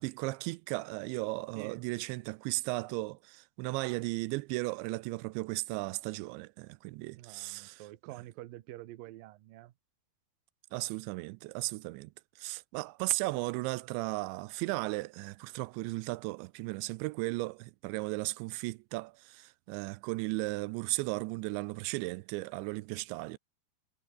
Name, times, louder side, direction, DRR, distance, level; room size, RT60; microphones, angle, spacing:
voice 1, 0.0-7.8 10.7-12.1 12.4-23.4, right 22 dB, 90° right, 2.9 m, -35 dB
voice 2, 1.6-1.9 7.2-9.7, right 16 dB, 70° right, 2.3 m, -47 dB
omnidirectional pair, 5.1 m